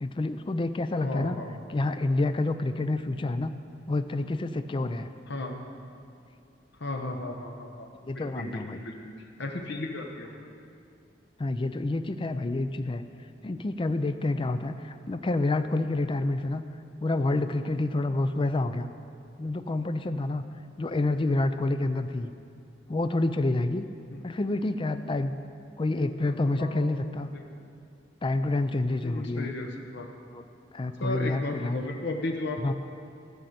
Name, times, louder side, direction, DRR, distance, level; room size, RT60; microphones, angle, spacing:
voice 1, 0.0-1.4 1.7-3.5 3.9-5.1 8.0-8.8 11.4-13.0 13.4-16.6 17.0-18.9 19.4-20.4 20.8-22.3 22.9-23.8 24.2-25.3 25.8-27.3 28.2-29.5 30.3-30.4 30.7-31.9 32.6-32.7, left 2 dB, 25° left, 10 dB, 0.4 m, -28 dB
voice 2, 1.0-1.5 5.3-5.6 6.8-7.9 8.1-9.1 9.4-10.5 21.0-21.4 24.1-24.2 25.8-26.3 26.6-26.9 27.3-27.7 29.0-30.1 31.0-32.7, left 2 dB, 65° left, 2 dB, 0.9 m, -35 dB
13.0 x 5.5 x 7.8 m, 2.5 s
head